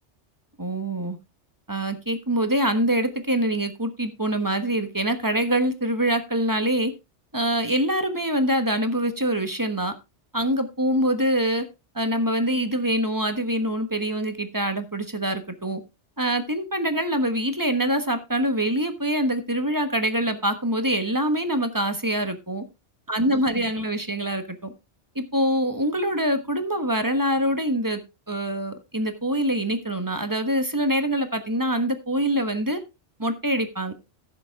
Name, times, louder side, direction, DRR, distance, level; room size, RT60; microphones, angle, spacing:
voice 1, 0.6-1.2 1.7-6.9 7.3-9.9 10.3-11.7 11.9-15.8 16.2-22.6 23.1-24.7 25.1-28.0 28.3-32.8 33.2-33.9, right 1 dB, 15° right, 8 dB, 1.2 m, -24 dB
15.0 x 7.3 x 3.5 m, 0.26 s
omnidirectional pair, 1.2 m